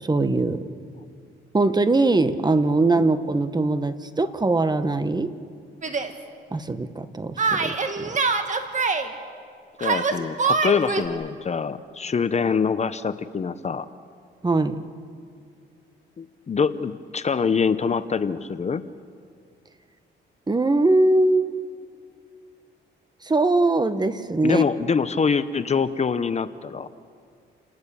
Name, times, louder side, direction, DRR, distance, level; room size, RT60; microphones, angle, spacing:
voice 1, 0.0-0.6 1.5-5.3 6.5-8.1 14.4-14.8 20.5-21.5 23.2-24.6, right 2 dB, 20° right, 11 dB, 1.2 m, -21 dB
Yell, 5.8-6.1 7.4-9.1 9.8-11.1, right 4 dB, 40° right, 1.9 m, -24 dB
voice 2, 9.8-13.9 16.2-18.8 24.4-26.9, left 5 dB, 35° left, 13 dB, 0.8 m, -24 dB
29.0 x 19.0 x 7.0 m, 2.2 s
cardioid pair, 90°, 20 cm